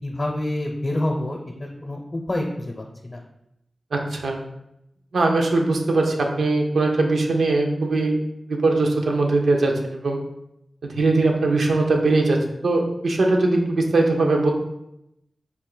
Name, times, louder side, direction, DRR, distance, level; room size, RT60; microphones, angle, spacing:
voice 1, 0.0-3.2 10.9-11.0, left 1 dB, 40° left, 0 dB, 0.6 m, -28 dB
voice 2, 3.9-4.5 5.1-8.2 8.5-10.2 11.0-12.4 12.6-14.5, right 2 dB, 85° right, 2 dB, 0.6 m, -20 dB
4.2 x 2.5 x 3.8 m, 0.83 s
wide cardioid pair, 65°, 0 cm